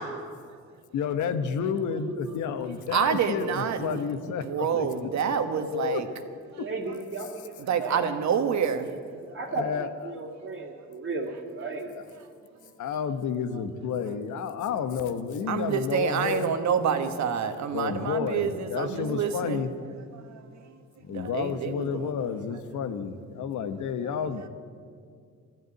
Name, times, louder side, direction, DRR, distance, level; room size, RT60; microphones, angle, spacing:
voice 1, 0.9-5.1 5.7-6.0 9.6-9.9 12.8-16.5 17.7-19.7 21.0-24.5, left 7 dB, 75° left, 10 dB, 1.1 m, -30 dB
voice 2, 2.0-2.3 6.5-8.0 9.3-12.0 18.8-19.3, right 3 dB, 40° right, -3 dB, 2.1 m, -35 dB
voice 3, 2.9-4.0 4.3-6.1 6.5-6.6 7.7-9.0 10.7-10.8 12.6-12.7 15.5-19.6 20.1-20.8 21.0-22.3, right 7 dB, 65° right, 8 dB, 1.4 m, -28 dB
12.5 x 12.0 x 9.1 m, 2.2 s
cardioid pair, 90°, 30 cm